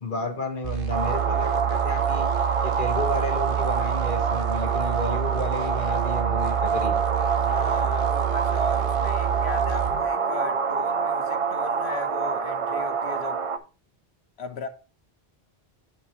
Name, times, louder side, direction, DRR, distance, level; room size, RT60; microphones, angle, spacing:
voice 1, 0.0-7.0, left 3 dB, 50° left, 1.3 m, -32 dB
sound 1, 0.6-10.1, right 12 dB, 60° right, 1.0 m, -28 dB
sound 2, 0.9-13.6, right 5 dB, 40° right, 0.5 m, -26 dB
sound 3, 2.8-11.2 11.6-11.7 12.2-12.3, left 1 dB, 85° right, 4.8 m, -47 dB
voice 2, 7.4-13.4 14.4-14.7, left 4 dB, 75° left, 1.3 m, -37 dB
7.6 x 7.4 x 2.9 m
omnidirectional pair, 1.1 m